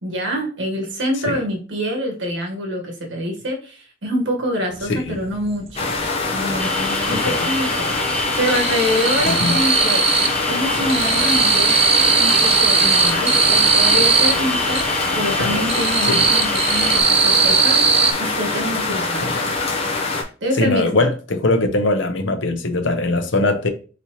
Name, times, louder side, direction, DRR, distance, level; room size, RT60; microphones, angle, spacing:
voice 1, 0.0-5.9 6.3-10.0 10.5-11.8 12.2-19.3 20.4-21.1, equal, 75° right, 1.4 m, -26 dB
sound 1, 4.9-5.0 5.3-6.5 6.8-7.5 7.8-10.4 10.7-14.9 15.3-18.1, right 5 dB, 35° right, 0.6 m, -18 dB
sound 2, 5.8-20.2, left 3 dB, 35° left, 1.0 m, -23 dB
sound 3, 6.6-17.0, left 1 dB, 5° left, 0.6 m, -27 dB
voice 2, 7.1-7.5 9.2-9.6 15.4-15.7 16.1-16.2 19.2-19.5 20.6-23.7, left 2 dB, 75° left, 0.8 m, -21 dB
4.3 x 4.1 x 3.0 m
head